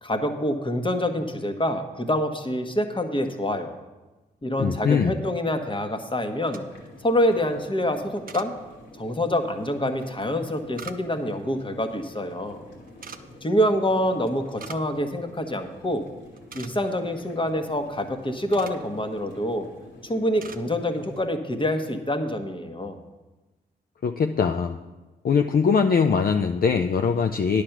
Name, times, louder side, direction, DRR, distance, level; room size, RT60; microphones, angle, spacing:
voice 1, 0.0-3.7 4.4-6.6 7.0-8.5 9.0-12.6 13.4-16.1 16.5-19.7 20.0-23.0, left 1 dB, 25° left, 6 dB, 1.3 m, -26 dB
voice 2, 4.6-5.2 24.0-24.8 25.2-27.6, left 6 dB, 50° left, 6 dB, 0.5 m, -22 dB
sound 1, 6.3-6.9 8.2-8.5 10.2-11.3 12.9-13.2 14.3-14.9 15.2-15.3 15.8-16.0 16.3-17.0 18.0-18.9 19.6-19.8 20.1-20.7 21.0-21.2, right 5 dB, 50° right, 0.7 m, -43 dB
sound 2, 6.6-21.3, left 1 dB, 70° left, 2.4 m, -48 dB
9.8 x 6.7 x 6.0 m, 1.2 s
supercardioid pair, 40°, 19 cm